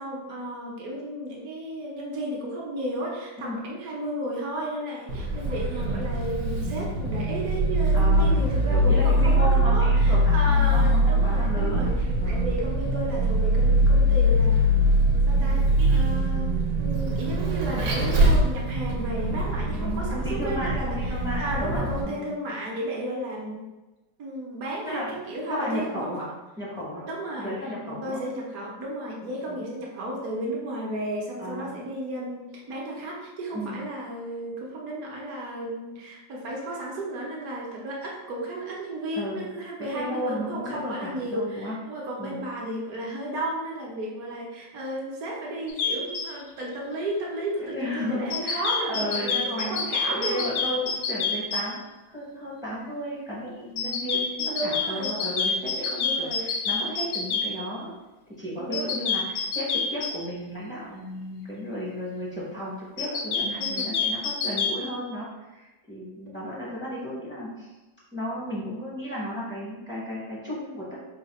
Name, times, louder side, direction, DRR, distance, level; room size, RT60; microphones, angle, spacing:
voice 1, 0.0-11.9 12.2-14.7 15.2-23.7 24.2-26.2 27.0-27.6 28.0-50.5 54.4-55.1 56.0-56.5 58.6-59.1 63.6-64.0 66.3-66.6, right 1 dB, 60° right, -2 dB, 1.1 m, -33 dB
Vehicle, 5.1-22.0, equal, 80° right, 1.4 m, -22 dB
voice 2, 7.9-8.4 8.7-11.8 12.2-12.5 19.7-22.3 24.9-25.1 25.5-26.3 26.6-27.0 27.4-28.2 29.5-29.7 31.4-31.7 33.5-33.8 39.1-39.5 39.8-41.8 42.2-42.4 47.6-51.8 52.1-57.9 58.4-67.7 68.1-71.0, equal, 5° right, -7 dB, 0.3 m, -34 dB
sound 1, 45.7-46.3 48.3-51.6 53.8-57.5 58.7-60.1 63.0-64.7, left 5 dB, 70° left, 0.8 m, -27 dB
4.0 x 2.2 x 4.0 m, 1.1 s
omnidirectional pair, 1.9 m